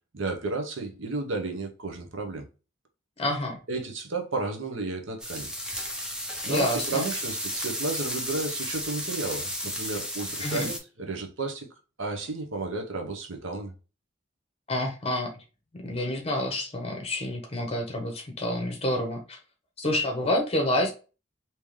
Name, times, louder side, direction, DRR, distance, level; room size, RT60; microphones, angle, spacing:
voice 1, 0.1-2.5 3.7-5.5 6.4-11.7 12.0-13.7, right 3 dB, 80° right, 0.9 m, -32 dB
voice 2, 3.2-3.6 6.5-7.1 10.4-10.7 14.7-15.3 15.7-19.4 19.8-20.9, left 1 dB, 30° left, 1.0 m, -28 dB
sound 1, 5.2-10.8, equal, 5° right, 0.7 m, -33 dB
3.6 x 2.9 x 3.1 m
head